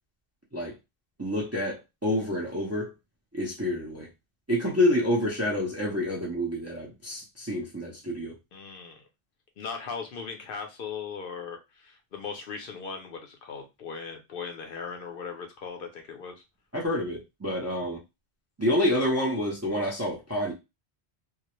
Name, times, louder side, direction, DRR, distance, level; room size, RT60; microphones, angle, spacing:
voice 1, 1.2-2.9 3.3-4.1 4.5-8.3 16.7-18.0 18.6-20.5, left 1 dB, 20° right, 0.4 m, -28 dB
voice 2, 8.5-9.1 9.6-16.4, left 5 dB, 65° left, 0.7 m, -38 dB
2.2 x 2.0 x 2.9 m
omnidirectional pair, 1.1 m